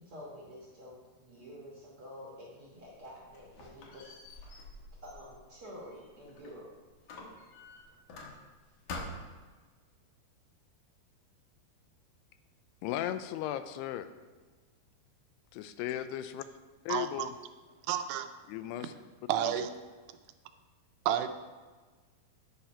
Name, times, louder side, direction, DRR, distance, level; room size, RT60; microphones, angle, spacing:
voice 1, 0.0-4.4 5.0-6.7, equal, 60° right, -4 dB, 1.4 m, -49 dB
Squeak, 2.8-6.6 7.1-8.6 8.9-9.5, left 2 dB, 65° left, 2.4 m, -46 dB
voice 2, 12.8-14.1 15.5-16.4 16.9-17.3 18.5-18.9, left 12 dB, 85° left, 11 dB, 2.6 m, -36 dB
voice 3, 16.9-17.3 17.9-18.3 19.3-19.7 21.1-21.3, right 10 dB, 90° right, 9 dB, 2.7 m, -30 dB
10.5 x 5.6 x 4.3 m, 1.4 s
omnidirectional pair, 4.6 m